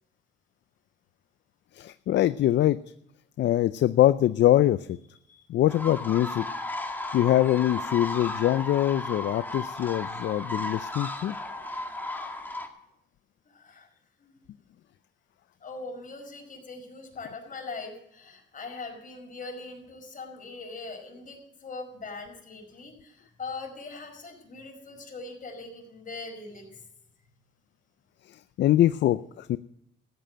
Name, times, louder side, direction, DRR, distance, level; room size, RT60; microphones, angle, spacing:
voice 1, 1.7-2.8 3.4-5.0 5.5-6.5 7.1-11.3 28.3-29.6, left 13 dB, 65° left, 15 dB, 0.5 m, -23 dB
sound 1, 5.7-12.7, left 2 dB, 10° left, 2.0 m, -35 dB
voice 2, 13.4-13.9 14.2-14.4 15.6-26.8, left 3 dB, 45° left, 2 dB, 5.0 m, -41 dB
14.0 x 9.1 x 7.6 m, 0.76 s
cardioid pair, 90°, 20 cm